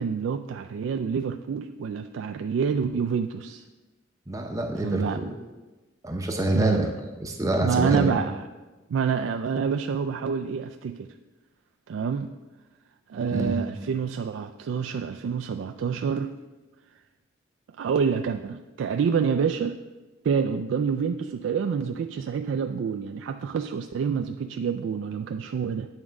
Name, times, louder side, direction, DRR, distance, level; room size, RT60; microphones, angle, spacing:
voice 1, 0.0-3.6 4.8-5.2 6.5-6.9 7.6-8.4 8.9-11.1 11.9-12.3 13.1-16.3 17.8-19.8 20.2-25.9, right 6 dB, 85° right, 6 dB, 0.3 m, -27 dB
voice 2, 4.3-5.4 6.0-6.9 7.2-8.1 13.3-13.5, right 1 dB, 15° right, 2 dB, 0.6 m, -26 dB
9.0 x 3.6 x 6.2 m, 1.2 s
head